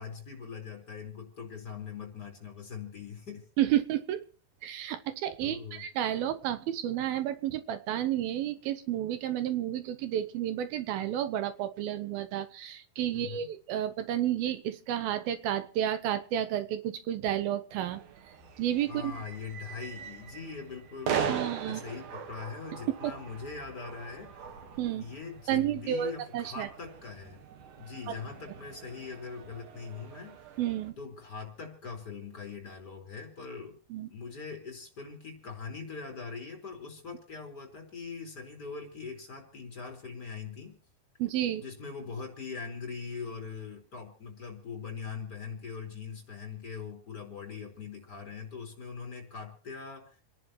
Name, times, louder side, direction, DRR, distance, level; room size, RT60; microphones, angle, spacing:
voice 1, 0.0-3.5 5.4-5.8 13.1-13.5 18.9-24.6 25.0-27.4 27.8-30.6 31.0-33.8 34.1-40.8 41.6-50.2, left 5 dB, 25° left, 3 dB, 4.9 m, -42 dB
voice 2, 3.6-4.2 4.6-18.0 18.6-19.2 21.3-21.8 23.0-23.1 24.8-25.0 25.5-26.7 30.6-30.9 33.9-34.1 41.2-41.6, right 11 dB, 80° right, 10 dB, 2.7 m, -31 dB
sound 1, 17.7-30.9, right 8 dB, 60° right, 2.8 m, -40 dB
29.5 x 11.0 x 3.1 m, 0.39 s
omnidirectional pair, 4.3 m